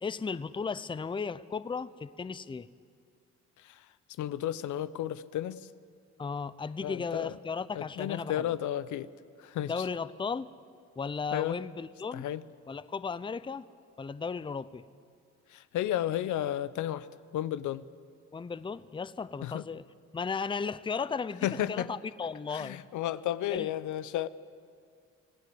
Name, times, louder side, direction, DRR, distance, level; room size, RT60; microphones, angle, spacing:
voice 1, 0.0-2.7 6.2-8.5 9.6-10.5 11.0-12.2 12.7-13.7 14.0-14.8 18.3-19.8 20.1-22.8 23.5-23.7, left 5 dB, 15° left, 17 dB, 0.6 m, -35 dB
voice 2, 4.2-5.7 6.8-7.3 7.7-9.1 9.4-9.8 11.3-11.6 12.1-12.4 15.5-17.1 17.3-17.8 19.4-19.6 21.4-21.9 22.5-24.3, left 12 dB, 75° left, 16 dB, 0.7 m, -32 dB
25.5 x 16.5 x 7.9 m, 2.2 s
cardioid pair, 90°, 30 cm